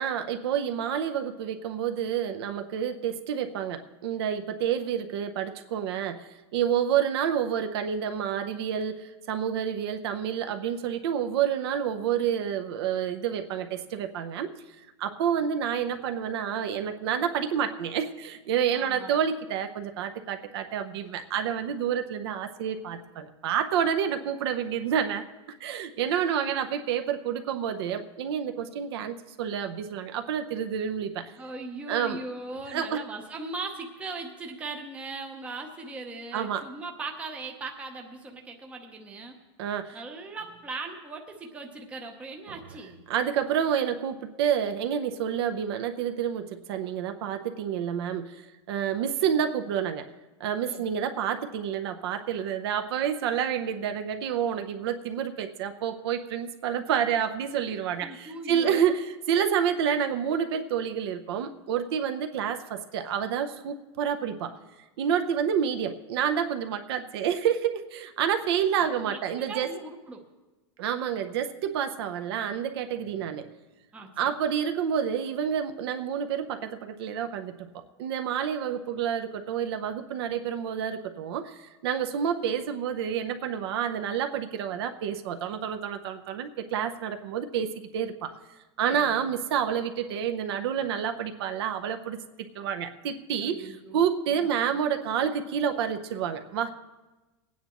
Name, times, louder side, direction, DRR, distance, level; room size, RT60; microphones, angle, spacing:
voice 1, 0.0-14.5 15.0-25.2 25.6-31.3 31.9-32.2 32.7-33.0 36.3-36.7 39.6-40.0 43.1-50.1 50.4-64.6 65.0-69.7 70.8-73.5 74.2-77.7 78.0-88.3 88.8-92.2 92.5-96.7, right 8 dB, 55° right, 7 dB, 0.7 m, -29 dB
voice 2, 18.7-19.2 31.4-39.4 39.9-43.0 50.7-50.9 58.0-59.0 68.8-70.2 73.9-74.3 88.9-89.3 93.4-94.6, right 3 dB, 10° right, 2 dB, 0.7 m, -39 dB
22.5 x 9.3 x 3.0 m, 1.1 s
supercardioid pair, 175°, 16 cm